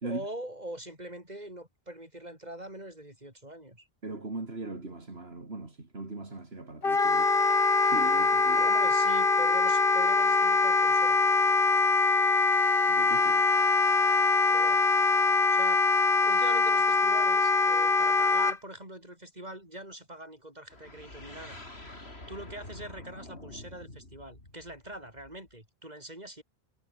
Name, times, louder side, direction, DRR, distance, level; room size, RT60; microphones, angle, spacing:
voice 1, 0.0-3.9 8.6-11.2 14.5-14.8 15.5-15.8 16.2-26.4, right 1 dB, 40° right, 7.7 m, -43 dB
voice 2, 4.0-7.4 7.8-8.7 12.9-13.5, right 2 dB, 75° right, 3.6 m, -39 dB
Wind instrument woodwind instrument, 6.8-18.6, left 3 dB, 60° left, 2.3 m, -23 dB
sound 1, 20.7-25.5, left 2 dB, 85° left, 5.9 m, -47 dB
omnidirectional pair, 1.0 m